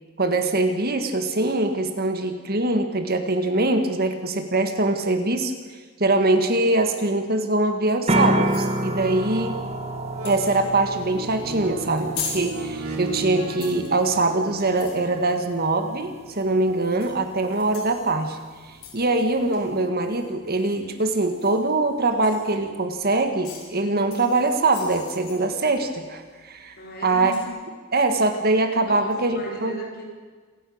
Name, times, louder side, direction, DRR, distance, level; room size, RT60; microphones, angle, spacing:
voice 1, 0.2-5.5 6.0-9.6 10.2-18.4 18.9-26.8 27.0-27.3 27.9-29.8, right 2 dB, 45° right, 7 dB, 1.8 m, -23 dB
sound 1, 8.0-27.5, left 6 dB, 75° left, 6.3 m, -43 dB
sound 2, 8.1-19.8, right 1 dB, 30° right, 1.7 m, -31 dB
sound 3, 9.8-9.9 10.1-16.0 16.7-16.8, right 3 dB, 80° right, 3.2 m, -36 dB
voice 2, 26.8-27.5 28.8-30.0, equal, 45° left, 0 dB, 4.9 m, -36 dB
27.0 x 11.5 x 8.7 m, 1.5 s
head